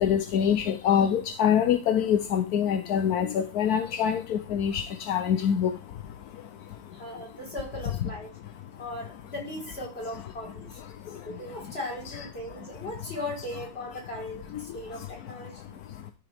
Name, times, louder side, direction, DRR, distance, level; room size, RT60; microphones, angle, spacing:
voice 1, 0.0-5.7, left 8 dB, 65° left, 1.1 m, -25 dB
voice 2, 6.9-8.3 8.8-10.8 11.2-15.8, left 1 dB, 30° left, 4.4 m, -38 dB
13.5 x 6.5 x 3.5 m
omnidirectional pair, 2.1 m